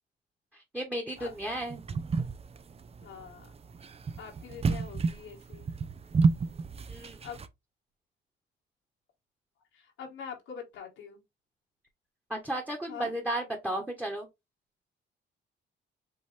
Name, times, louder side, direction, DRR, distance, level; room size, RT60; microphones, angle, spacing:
voice 1, 0.5-1.8 6.9-7.2 12.3-14.3, right 1 dB, 10° right, 1.4 m, -34 dB
sound 1, 1.2-7.5, right 4 dB, 30° right, 0.6 m, -30 dB
voice 2, 3.0-3.5 4.2-5.7 6.9-7.4 9.7-11.2 12.9-13.2, left 7 dB, 90° left, 1.8 m, -44 dB
5.3 x 3.0 x 3.3 m
cardioid pair, 90°, 20 cm